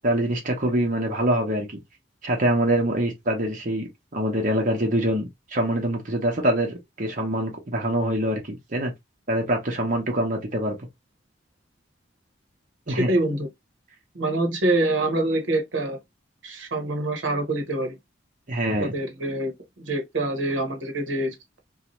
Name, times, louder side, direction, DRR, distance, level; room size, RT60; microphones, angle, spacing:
voice 1, 0.0-1.7 2.2-8.9 9.3-10.7 12.9-13.1 18.5-18.9, right 1 dB, 45° right, 0.9 m, -24 dB
voice 2, 13.0-13.5 14.1-16.0 16.4-18.0 18.8-21.6, right 2 dB, 85° right, 1.0 m, -25 dB
2.7 x 2.3 x 3.0 m
head